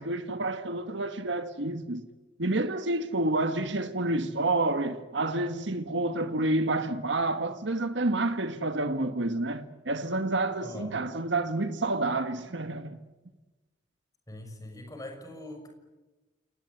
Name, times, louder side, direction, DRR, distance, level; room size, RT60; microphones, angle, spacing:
voice 1, 0.0-2.1 2.4-13.0, right 2 dB, 75° right, 1.5 m, -29 dB
voice 2, 10.6-10.9 14.3-15.7, left 1 dB, 20° left, 6.2 m, -42 dB
29.0 x 19.0 x 9.7 m
head